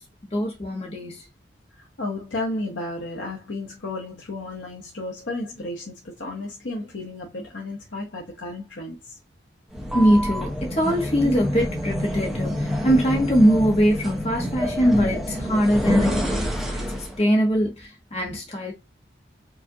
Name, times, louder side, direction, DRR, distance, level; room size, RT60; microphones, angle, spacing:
voice 1, 0.3-1.2 9.9-18.7, equal, 35° left, 0.9 m, -22 dB
voice 2, 1.7-9.2, left 2 dB, 75° left, 0.9 m, -33 dB
sound 1, 9.7-17.2, equal, ahead, 0.6 m, -27 dB
4.7 x 2.5 x 2.7 m
head